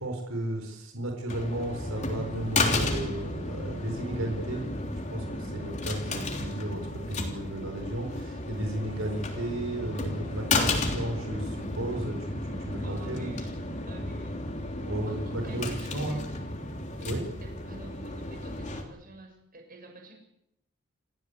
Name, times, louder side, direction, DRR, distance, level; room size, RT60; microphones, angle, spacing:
voice 1, 0.0-4.7 5.1-13.3 14.8-16.2 17.0-17.2, right 1 dB, 85° right, 2 dB, 4.5 m, -34 dB
sound 1, 1.3-18.8, left 2 dB, 35° left, 3.4 m, -33 dB
voice 2, 12.5-14.4 14.8-16.4 17.0-17.1 17.4-20.1, right 1 dB, 45° right, 3 dB, 7.1 m, -49 dB
28.5 x 15.0 x 8.3 m, 0.82 s
head